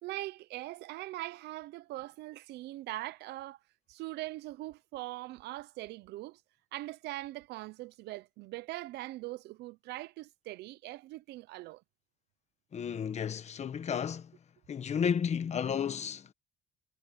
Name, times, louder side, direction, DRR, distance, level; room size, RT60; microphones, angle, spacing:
voice 1, 0.0-3.6 3.9-6.4 6.7-11.8, right 17 dB, 80° right, 0.8 m, -41 dB
voice 2, 12.7-14.3 14.7-16.3, left 7 dB, 40° left, 1.4 m, -32 dB
cardioid pair, 110°, 17 cm